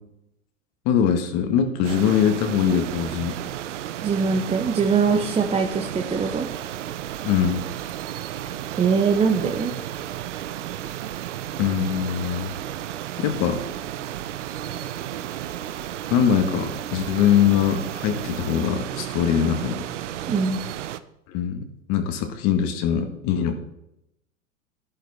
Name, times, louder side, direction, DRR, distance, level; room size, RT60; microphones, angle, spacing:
voice 1, 0.9-3.4 7.2-7.6 11.6-12.5 13.2-13.6 16.1-19.9 21.3-21.6 21.9-23.5, left 8 dB, 40° left, 6 dB, 1.9 m, -22 dB
sound 1, 1.8-21.0, right 11 dB, 60° right, 0.9 m, -33 dB
voice 2, 4.0-6.5 8.8-9.7 20.3-20.6, right 5 dB, 15° right, 3 dB, 0.9 m, -22 dB
13.0 x 11.5 x 4.3 m, 0.82 s
figure-of-eight pair, 100°, 40 cm